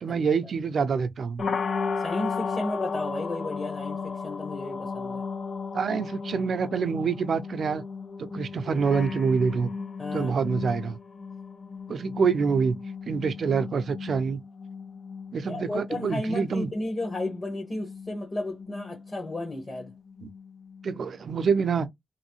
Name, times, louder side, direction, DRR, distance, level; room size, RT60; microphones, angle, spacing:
voice 1, 0.0-1.4 5.7-7.8 8.2-9.7 10.1-11.0 11.9-12.8 13.1-14.4 15.3-16.7 20.2-20.3 20.8-21.9, right 5 dB, 80° right, 0.4 m, -26 dB
sound 1, 1.4-21.2, left 5 dB, 70° left, 0.6 m, -35 dB
voice 2, 2.0-5.2 10.0-10.3 15.4-19.9, left 1 dB, 35° left, 1.3 m, -33 dB
3.1 x 2.6 x 3.0 m
wide cardioid pair, 120°, 0 cm